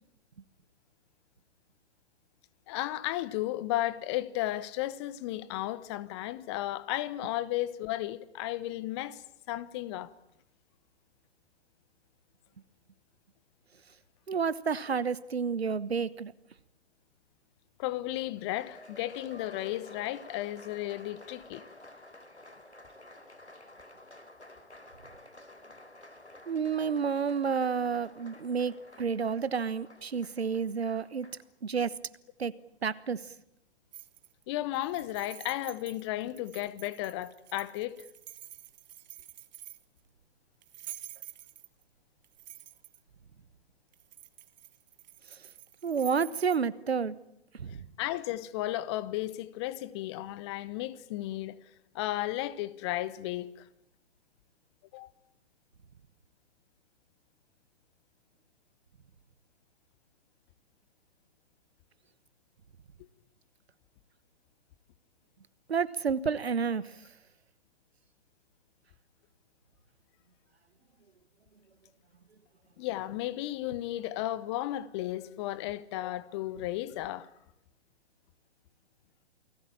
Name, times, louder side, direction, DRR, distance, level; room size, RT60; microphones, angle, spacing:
voice 1, 2.7-9.2 9.5-10.1 17.8-21.6 34.5-38.0 48.0-51.6 51.9-53.5 54.9-55.1 72.8-77.3, left 15 dB, 25° left, 0.9 m, -34 dB
voice 2, 14.3-16.3 26.5-31.3 31.6-31.9 32.4-32.5 32.8-33.2 45.3-45.4 45.8-47.2 47.5-47.8 65.7-67.0, right 6 dB, 70° right, 1.2 m, -30 dB
Applause, 18.2-31.5, left 1 dB, 90° left, 3.8 m, -52 dB
sound 1, 33.9-34.4 34.7-40.0 40.6-41.8 42.2-43.0 43.9-46.6, right 13 dB, 40° right, 1.5 m, -49 dB
29.0 x 19.5 x 8.8 m
figure-of-eight pair, 120°, 33 cm